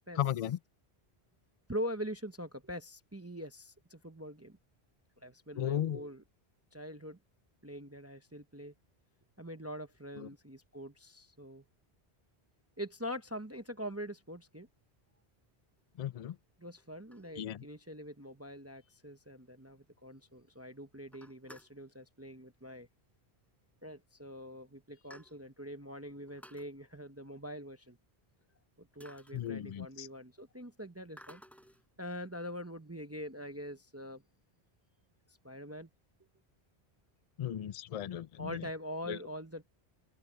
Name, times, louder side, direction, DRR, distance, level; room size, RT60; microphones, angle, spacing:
voice 1, 0.2-0.6 5.6-6.1 10.2-10.3 16.0-16.4 17.4-17.6 29.3-30.1 37.4-38.6 39.1-39.2, left 11 dB, 60° left, 0.4 m, -35 dB
voice 2, 1.7-4.6 5.2-6.2 6.7-7.2 7.6-8.7 9.4-11.6 12.8-14.7 16.6-22.9 23.8-28.0 28.8-31.4 32.0-34.2 35.4-35.9 38.4-39.6, equal, 15° right, 0.8 m, -43 dB
sound 1, 14.9-15.0 15.8-15.9 16.8-17.8 18.2-18.3 18.5-18.6 19.0-19.1 19.4-19.5 19.8-20.3 20.6-20.7 21.0-21.8 22.9-23.1 23.4-23.5 24.3-24.4 24.7-25.7 26.2-26.7 28.4-28.5 29.0-30.0 31.2-31.9, equal, ahead, 5.9 m, -57 dB
open air
omnidirectional pair, 1.1 m